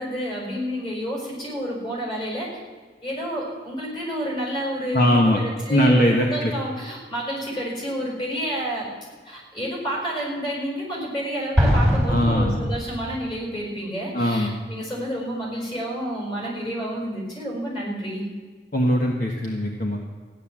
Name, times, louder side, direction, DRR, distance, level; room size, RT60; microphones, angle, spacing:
voice 1, 0.0-2.6 3.0-8.9 9.3-18.3, equal, 25° left, -2 dB, 5.3 m, -30 dB
voice 2, 4.9-5.4 5.7-6.5 12.1-12.6 14.1-14.5 18.7-20.0, equal, 50° left, 0 dB, 1.4 m, -20 dB
Explosion, 11.6-13.3, equal, 5° left, 2.5 m, -22 dB
15.0 x 10.5 x 7.4 m, 1.5 s
head